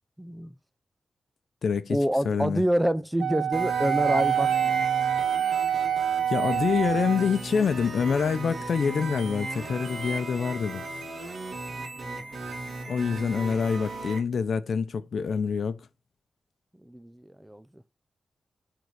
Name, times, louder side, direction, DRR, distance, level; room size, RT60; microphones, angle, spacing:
voice 1, 0.2-0.5 1.9-4.9 12.0-12.3 16.9-17.7, equal, 5° right, 0.5 m, -27 dB
voice 2, 1.6-2.0 2.2-2.6 6.3-10.9 12.9-15.8, left 6 dB, 65° left, 0.7 m, -26 dB
Wind instrument woodwind instrument, 3.2-7.4, right 9 dB, 90° right, 0.6 m, -26 dB
sound 1, 3.5-14.2, right 2 dB, 60° right, 2.4 m, -36 dB
9.3 x 3.9 x 4.8 m
wide cardioid pair, 140°, 0 cm